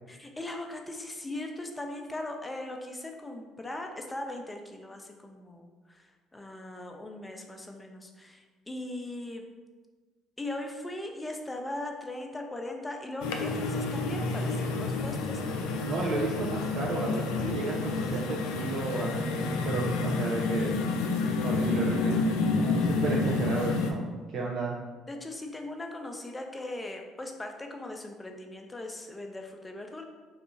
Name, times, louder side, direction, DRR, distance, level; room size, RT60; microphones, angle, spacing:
voice 1, 0.1-9.4 10.4-15.9 17.4-17.8 25.1-30.0, left 1 dB, 15° left, 3 dB, 0.5 m, -39 dB
sound 1, 13.2-23.9, left 3 dB, 80° left, 0.3 m, -29 dB
voice 2, 15.8-20.7 21.4-22.2 22.6-24.7, right 2 dB, 65° right, -2 dB, 0.4 m, -33 dB
2.7 x 2.4 x 3.7 m, 1.3 s
hypercardioid pair, 65°, 0 cm